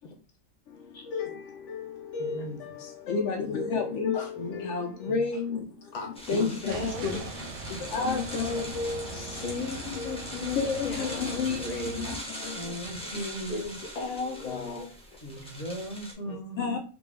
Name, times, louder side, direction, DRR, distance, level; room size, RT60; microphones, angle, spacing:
voice 1, 0.7-5.9 6.3-9.4 9.9-10.2 10.5-11.6 12.0-12.7 14.4-14.7 16.3-16.8, left 5 dB, 70° left, 0.9 m, -32 dB
voice 2, 2.2-2.9 4.1-5.2 5.9-7.3 8.8-12.2 13.5-15.0, left 3 dB, 45° left, 0.5 m, -36 dB
sound 1, 6.1-16.1, equal, 5° left, 0.7 m, -41 dB
sound 2, 6.7-12.2, right 3 dB, 65° right, 0.8 m, -41 dB
voice 3, 12.5-13.8 15.2-16.8, right 1 dB, 30° left, 1.1 m, -38 dB
3.4 x 2.5 x 3.3 m
omnidirectional pair, 1.3 m